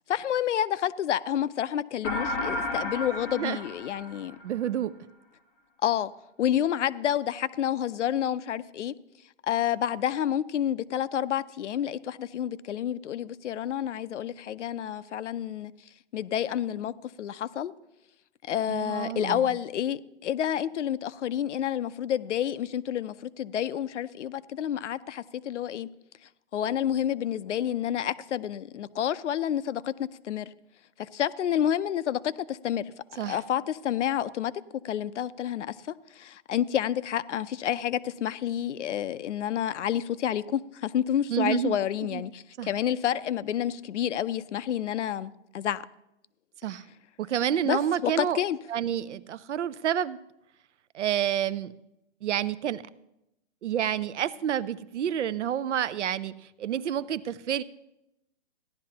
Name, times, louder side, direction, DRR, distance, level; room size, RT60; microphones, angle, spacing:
voice 1, 0.1-4.4 5.8-6.1 6.4-8.9 9.4-15.7 16.1-17.7 18.4-25.9 26.5-30.5 31.0-32.9 33.2-35.8 36.1-45.9 47.6-48.6, left 10 dB, 80° left, 0.6 m, -29 dB
sound 1, 2.0-4.7, left 2 dB, 5° left, 0.5 m, -32 dB
voice 2, 4.4-4.9 18.7-19.4 33.2-33.4 41.3-41.8 42.1-42.2 42.6-42.7 46.6-46.8 47.2-48.4 48.7-50.2 50.9-51.7 52.2-52.8 53.6-56.3 56.6-57.6, right 10 dB, 75° right, 0.6 m, -29 dB
15.5 x 11.0 x 2.9 m
hypercardioid pair, 165°, 35 cm